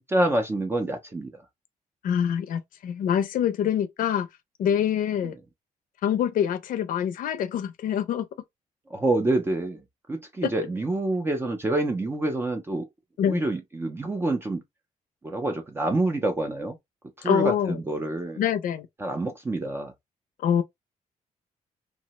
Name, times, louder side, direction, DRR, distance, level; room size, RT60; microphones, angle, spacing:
voice 1, 0.1-1.3 8.9-9.8 10.1-12.9 13.3-14.6 15.2-16.8 17.2-18.4 19.0-19.9, right 2 dB, 15° right, 0.5 m, -27 dB
voice 2, 2.0-4.3 4.6-5.4 6.0-8.3 10.4-10.5 13.2-13.4 17.2-17.8 18.4-18.9 20.4-20.6, left 9 dB, 75° left, 0.5 m, -25 dB
2.8 x 2.1 x 2.9 m
cardioid pair, 165°, 14 cm